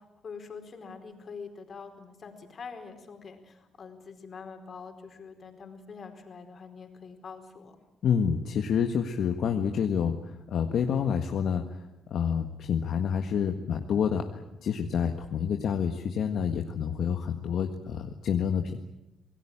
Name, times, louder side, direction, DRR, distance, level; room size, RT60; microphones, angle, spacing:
voice 1, 0.0-7.8, left 5 dB, 45° left, 5 dB, 4.5 m, -45 dB
voice 2, 8.0-11.8 12.1-18.8, left 7 dB, 70° left, 5 dB, 1.6 m, -28 dB
27.0 x 18.0 x 8.9 m, 0.94 s
cardioid pair, 90°, 0 cm